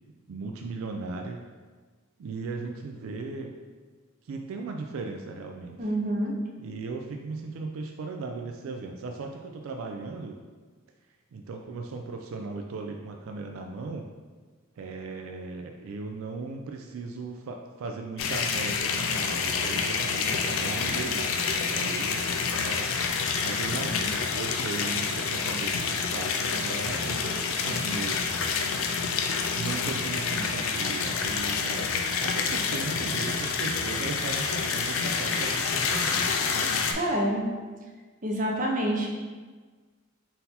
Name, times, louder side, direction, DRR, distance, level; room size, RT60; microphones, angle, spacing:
voice 1, 0.3-1.4 2.2-3.6 4.2-5.8 6.6-10.4 11.3-14.1 14.8-22.2 22.6-22.9 23.2-28.2 29.6-31.9 32.2-36.5, right 3 dB, 75° right, 3 dB, 0.3 m, -37 dB
voice 2, 5.8-6.3 37.0-37.4 38.2-39.1, right 1 dB, 40° right, 0 dB, 0.6 m, -27 dB
sound 1, 18.2-36.9, left 5 dB, 75° left, 0.4 m, -28 dB
3.9 x 2.7 x 4.1 m, 1.4 s
head